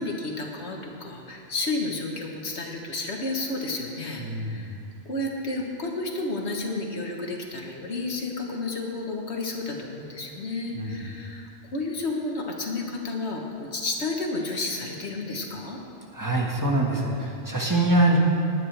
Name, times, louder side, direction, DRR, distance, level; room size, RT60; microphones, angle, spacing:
voice 1, 0.0-4.8 5.0-15.8, left 2 dB, 80° left, 1 dB, 1.6 m, -31 dB
voice 2, 4.2-4.6 10.7-10.9 16.1-18.2, right 2 dB, 15° right, -2 dB, 1.6 m, -24 dB
19.5 x 9.4 x 3.4 m, 2.6 s
omnidirectional pair, 1.1 m